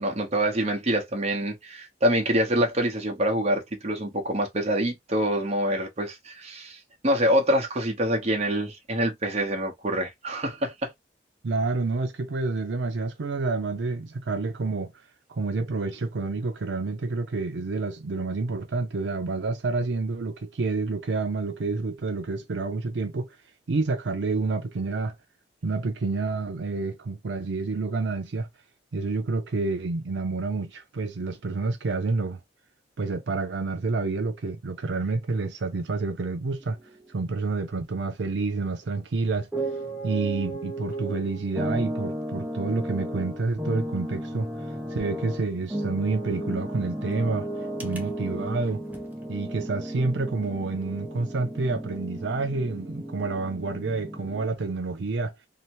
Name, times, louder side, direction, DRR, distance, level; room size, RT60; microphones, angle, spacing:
voice 1, 0.0-10.9, equal, 40° right, 0.9 m, -26 dB
voice 2, 11.4-14.9 15.3-23.3 23.7-25.1 25.6-28.5 28.9-32.4 33.0-36.8 37.1-39.5 40.0-44.5 44.9-47.5 47.8-48.8 49.3-55.3, right 3 dB, 90° right, 0.5 m, -28 dB
sound 1, 36.6-37.0 39.4-54.5, right 1 dB, 10° right, 0.6 m, -34 dB
2.8 x 2.1 x 2.9 m
head